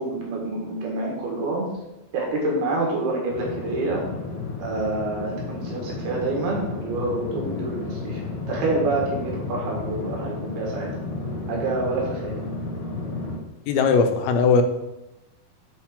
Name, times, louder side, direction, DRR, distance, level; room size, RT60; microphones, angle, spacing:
voice 1, 0.0-1.7 2.1-4.0 4.6-10.9 11.5-12.4, right 2 dB, 80° right, -2 dB, 3.6 m, -27 dB
sound 1, 3.3-13.4, left 3 dB, 55° left, 1.8 m, -32 dB
voice 2, 13.7-14.6, left 5 dB, 80° left, 7 dB, 2.5 m, -19 dB
8.7 x 4.5 x 3.7 m, 0.95 s
omnidirectional pair, 4.4 m